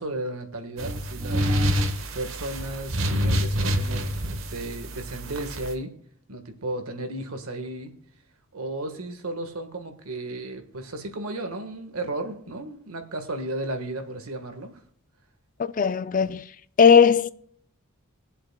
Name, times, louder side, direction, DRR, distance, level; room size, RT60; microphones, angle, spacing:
voice 1, 0.0-1.5 2.1-5.9 6.3-7.9 8.5-14.8, right 2 dB, 75° right, 1.5 m, -34 dB
sound 1, 0.8-5.7, equal, 60° right, 1.1 m, -27 dB
voice 2, 15.8-16.5 16.8-17.3, left 6 dB, 35° left, 0.4 m, -17 dB
22.0 x 7.7 x 2.2 m
head